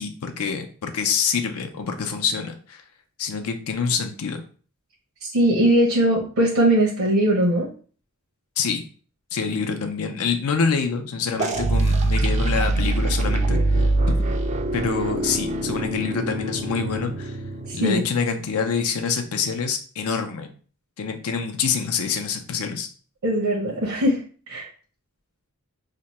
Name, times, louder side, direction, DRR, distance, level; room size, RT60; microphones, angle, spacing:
voice 1, 0.0-2.8 3.2-4.4 8.6-8.8 9.3-13.9 14.7-17.4 17.7-20.5 21.0-22.9, left 5 dB, 85° left, 6 dB, 0.5 m, -26 dB
voice 2, 5.2-7.7 17.7-18.0 23.2-24.2 24.5-24.7, right 1 dB, 75° right, -5 dB, 0.9 m, -20 dB
sound 1, 11.4-18.0, right 2 dB, 30° right, 0.3 m, -23 dB
2.8 x 2.2 x 4.1 m, 0.41 s
head